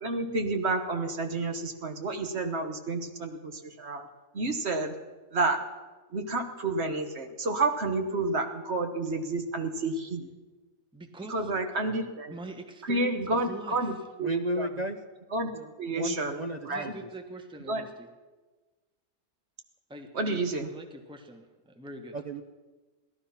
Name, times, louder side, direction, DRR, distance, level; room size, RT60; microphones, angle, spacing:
voice 1, 0.0-4.1 4.3-4.9 5.3-5.6 6.1-10.3 11.3-12.3 12.8-14.7 15.3-15.5 15.8-16.9 17.7-17.8 20.1-20.7, right 2 dB, 45° right, 6 dB, 1.3 m, -30 dB
voice 2, 10.9-11.5 12.3-13.9 16.7-18.1 19.9-22.2, right 2 dB, 5° right, 5 dB, 1.0 m, -44 dB
voice 3, 14.2-15.0 15.5-17.1 22.1-22.4, right 1 dB, 75° right, 6 dB, 0.4 m, -34 dB
16.5 x 12.5 x 5.7 m, 1.3 s
omnidirectional pair, 1.7 m